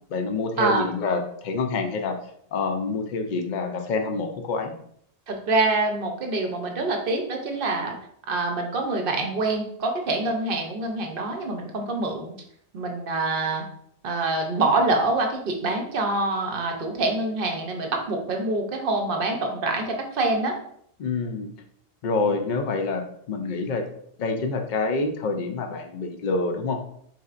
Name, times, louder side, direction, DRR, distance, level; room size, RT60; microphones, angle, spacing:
voice 1, 0.1-2.2 2.5-4.7 21.0-21.5 22.0-23.8 24.2-26.8, left 3 dB, 55° left, 5 dB, 0.5 m, -27 dB
voice 2, 5.3-8.0 8.3-12.3 12.7-13.6 14.0-20.5, right 2 dB, 60° right, 3 dB, 0.8 m, -25 dB
4.1 x 3.3 x 2.4 m, 0.69 s
omnidirectional pair, 1.2 m